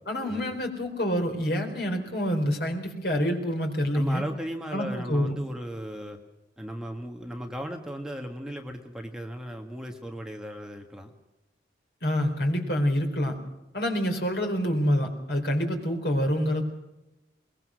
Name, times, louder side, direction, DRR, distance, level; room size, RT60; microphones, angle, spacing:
voice 1, 0.1-4.2 4.7-5.4 12.0-13.4 13.7-16.6, equal, 60° left, 4 dB, 4.1 m, -27 dB
voice 2, 3.9-6.2 6.6-11.1, equal, 5° right, 3 dB, 1.5 m, -36 dB
22.0 x 21.5 x 6.4 m, 0.96 s
head